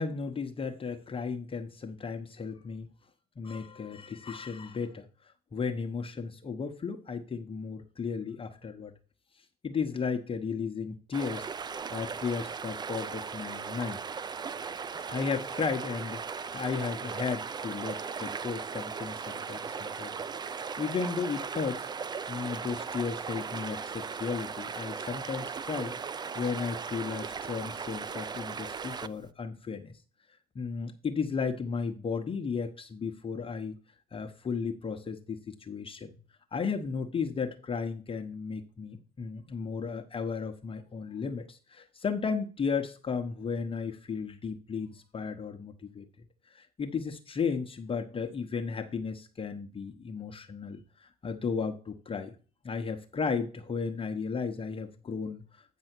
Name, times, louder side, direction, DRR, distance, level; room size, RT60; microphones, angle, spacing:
voice 1, 0.0-2.9 3.4-5.1 5.5-8.9 9.6-11.5 11.9-14.0 15.1-20.1 20.8-21.9 22.3-25.9 26.3-29.9 30.5-33.8 34.1-36.1 36.5-46.0 46.5-52.3 52.6-55.4, left 5 dB, 30° left, 4 dB, 1.1 m, -34 dB
sound 1, 11.1-29.3, right 6 dB, 25° right, 0.5 m, -37 dB
9.1 x 5.5 x 4.5 m, 0.37 s
hypercardioid pair, 65°, 19 cm